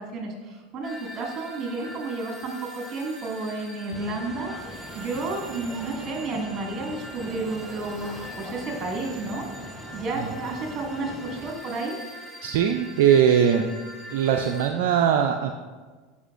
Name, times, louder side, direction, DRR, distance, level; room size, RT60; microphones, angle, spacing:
voice 1, 0.1-9.5 9.9-12.0, right 3 dB, 35° right, 0 dB, 2.1 m, -31 dB
sound 1, 0.8-14.7, equal, 10° right, 1.9 m, -43 dB
sound 2, 3.9-11.6, left 1 dB, 5° left, 1.0 m, -42 dB
voice 2, 12.4-13.7 14.1-15.5, right 8 dB, 65° right, 5 dB, 0.4 m, -20 dB
11.0 x 5.5 x 2.6 m, 1.4 s
hypercardioid pair, 85°, 0 cm